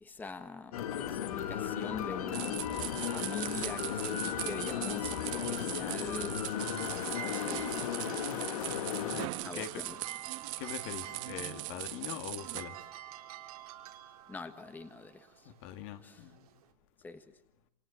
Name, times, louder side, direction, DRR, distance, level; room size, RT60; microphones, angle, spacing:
voice 1, 0.0-2.6 3.1-6.3 6.8-8.0 9.4-9.9 14.3-15.5 16.0-16.2 17.0-17.2, left 3 dB, 10° left, 1.3 m, -44 dB
sound 1, 0.7-9.3, left 10 dB, 85° left, 2.1 m, -35 dB
sound 2, 2.3-12.6, right 18 dB, 60° right, 1.6 m, -40 dB
sound 3, 6.3-16.7, right 12 dB, 85° right, 3.7 m, -49 dB
voice 2, 6.6-7.0 9.1-10.0 10.6-12.9 15.4-16.5, left 10 dB, 55° left, 2.4 m, -43 dB
28.0 x 26.0 x 7.4 m
supercardioid pair, 145°, 18 cm